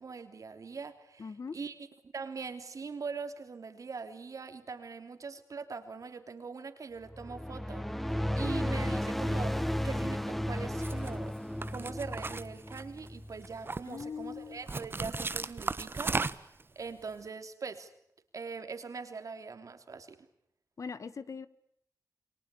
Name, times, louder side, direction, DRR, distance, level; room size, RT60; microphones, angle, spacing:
voice 1, 0.0-1.3 1.5-1.7 2.1-11.3 11.7-17.9 18.3-20.2, right 5 dB, 65° right, 8 dB, 3.2 m, -42 dB
voice 2, 1.2-1.6 13.9-14.7 20.8-21.5, left 5 dB, 60° left, 14 dB, 1.5 m, -41 dB
sound 1, 7.0-13.7, equal, 5° left, 1.0 m, -34 dB
sound 2, 10.7-11.1 11.6-13.1 13.4-14.0 14.7-16.6, right 3 dB, 35° right, 1.1 m, -35 dB
29.0 x 23.0 x 8.4 m, 0.76 s
wide cardioid pair, 95°, 6 cm